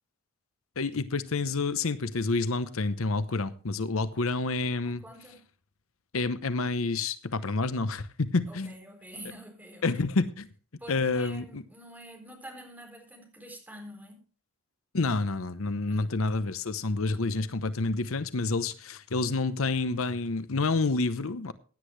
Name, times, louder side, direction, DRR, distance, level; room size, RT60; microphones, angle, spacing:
voice 1, 0.8-5.0 6.1-8.7 9.8-10.5 10.9-11.6 14.9-21.5, left 3 dB, 80° left, 0.8 m, -28 dB
voice 2, 4.8-5.4 8.5-9.9 10.8-14.2 15.7-16.3, equal, 10° right, 4.1 m, -47 dB
16.5 x 9.9 x 3.3 m
head